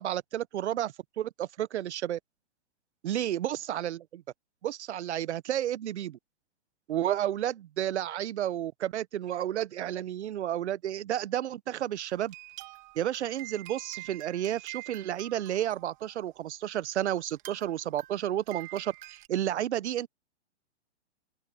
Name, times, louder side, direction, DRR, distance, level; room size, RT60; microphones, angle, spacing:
voice 1, 0.0-2.2 3.0-4.2 4.6-6.2 6.9-12.3 13.0-20.1, right 11 dB, 75° right, 0.9 m, -31 dB
sound 1, 12.1-16.3 16.9-17.0 17.3-19.3, right 21 dB, 20° right, 1.4 m, -47 dB
open air
hypercardioid pair, 160°, 34 cm